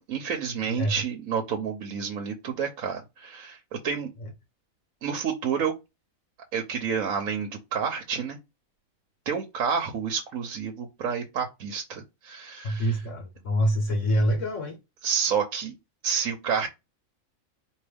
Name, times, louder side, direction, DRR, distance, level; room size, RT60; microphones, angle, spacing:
voice 1, 0.0-3.6 3.8-4.1 5.0-5.7 6.5-8.4 9.3-12.9 15.0-15.7 16.0-16.7, right 7 dB, 80° right, 1.2 m, -29 dB
voice 2, 12.6-14.8, equal, 65° left, 1.3 m, -26 dB
4.5 x 2.9 x 3.3 m
omnidirectional pair, 1.4 m